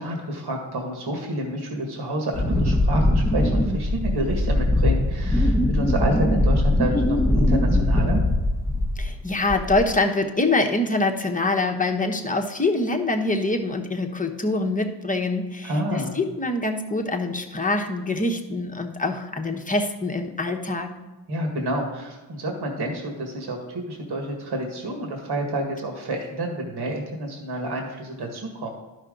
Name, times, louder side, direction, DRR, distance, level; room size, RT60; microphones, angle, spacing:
voice 1, 0.0-7.2 7.5-8.2 15.6-16.2 21.3-28.7, right 1 dB, 55° right, 1 dB, 1.9 m, -29 dB
Wind, 2.3-9.2 9.5-10.0, left 1 dB, 5° right, 1.0 m, -21 dB
voice 2, 9.0-20.9, left 2 dB, 15° left, 3 dB, 1.1 m, -25 dB
11.5 x 5.8 x 3.9 m, 1.1 s
cardioid pair, 75°, 46 cm